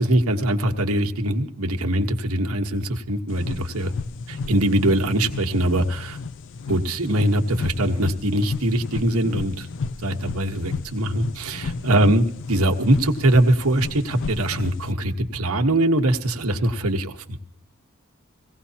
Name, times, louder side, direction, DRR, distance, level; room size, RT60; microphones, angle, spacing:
voice 1, 0.0-3.9 4.3-6.2 6.7-9.7 10.0-17.2, right 1 dB, 80° right, 3 dB, 1.1 m, -22 dB
sound 1, 3.3-14.9, left 4 dB, 60° left, 0.4 m, -33 dB
18.5 x 17.0 x 2.8 m, 0.68 s
head